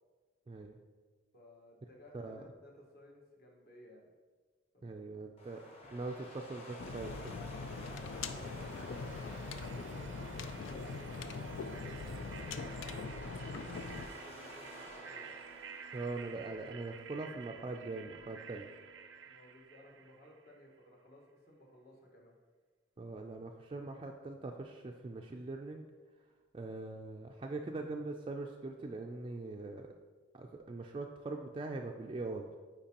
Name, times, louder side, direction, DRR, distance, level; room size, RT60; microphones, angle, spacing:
voice 1, 0.5-0.8 2.1-2.4 4.8-5.6 5.9-7.4 15.9-18.7 23.0-25.9 26.5-29.9 30.3-32.6, right 3 dB, 30° right, 2 dB, 0.3 m, -42 dB
voice 2, 1.3-4.1 4.7-5.1 7.8-15.3 19.2-22.4, left 1 dB, 55° left, -1 dB, 1.4 m, -58 dB
sound 1, 5.4-16.5, left 1 dB, 35° left, 1.1 m, -52 dB
sound 2, 6.8-14.1, left 4 dB, 90° left, 0.4 m, -42 dB
sound 3, 7.7-20.6, right 6 dB, 90° right, 0.5 m, -51 dB
8.8 x 4.6 x 2.9 m, 1.4 s
head